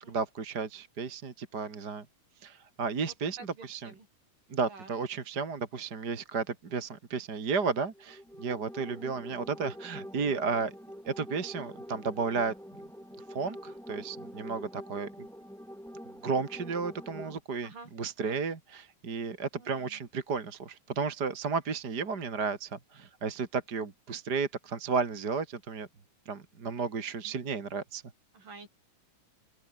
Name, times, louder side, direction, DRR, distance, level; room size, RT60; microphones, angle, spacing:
voice 1, 0.1-2.0 2.4-3.9 4.5-10.7 11.1-12.5 13.3-15.3 16.2-25.9 26.3-28.0, right 5 dB, 35° right, 2.4 m, -33 dB
voice 2, 3.0-4.1 4.7-4.9 8.9-9.0 10.5-10.6 17.6-17.9 18.2-18.4 19.6-20.0 27.2-27.3 28.3-28.7, right 3 dB, 85° right, 9.7 m, -50 dB
sound 1, 7.9-17.4, equal, ahead, 7.4 m, -45 dB
open air
omnidirectional pair, 3.7 m